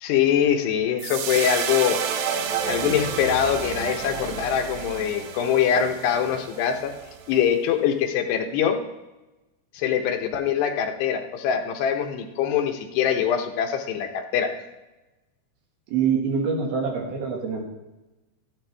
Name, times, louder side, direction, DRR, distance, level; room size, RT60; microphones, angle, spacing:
voice 1, 0.0-2.0 2.7-6.9 7.3-8.8 9.7-14.6, left 8 dB, 90° left, 4 dB, 3.1 m, -23 dB
sound 1, 1.0-7.4, right 7 dB, 90° right, 3.0 m, -30 dB
voice 2, 15.9-17.6, right 6 dB, 70° right, 1 dB, 3.5 m, -25 dB
14.0 x 11.0 x 3.4 m, 1.1 s
omnidirectional pair, 4.7 m